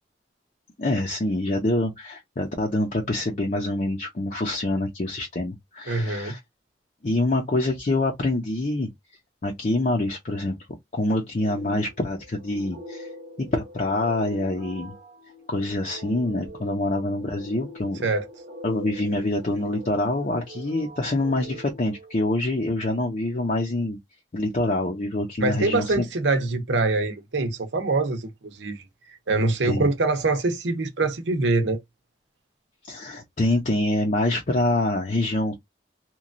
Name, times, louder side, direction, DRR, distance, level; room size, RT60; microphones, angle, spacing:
voice 1, 0.8-6.4 7.0-8.9 9.4-10.5 10.9-13.1 13.4-14.9 15.5-18.0 18.6-24.0 24.3-26.1 29.6-29.9 32.8-35.5, left 2 dB, 45° left, 0.6 m, -25 dB
voice 2, 5.9-6.3 18.0-18.3 25.4-28.8 29.3-31.8, right 3 dB, 90° right, 0.7 m, -24 dB
sound 1, 11.4-22.7, equal, 50° right, 0.8 m, -43 dB
2.9 x 2.3 x 2.5 m
head